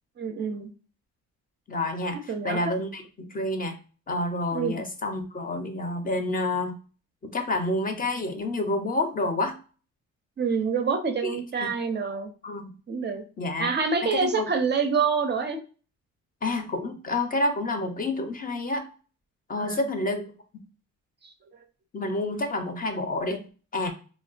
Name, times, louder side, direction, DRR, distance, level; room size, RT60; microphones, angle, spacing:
voice 1, 0.2-0.7 2.1-2.6 4.5-4.8 10.4-12.3 12.9-13.2 13.6-15.6 19.6-19.8 21.2-21.3, right 5 dB, 35° right, 6 dB, 0.4 m, -27 dB
voice 2, 1.7-3.0 3.3-3.8 4.1-6.8 7.2-9.6 11.2-11.7 12.4-12.8 13.4-13.7 14.0-14.5 16.4-18.9 19.5-20.6 21.9-23.4 23.7-23.9, left 2 dB, 30° left, 6 dB, 0.5 m, -29 dB
3.0 x 2.1 x 2.4 m, 0.37 s
cardioid pair, 90°, 30 cm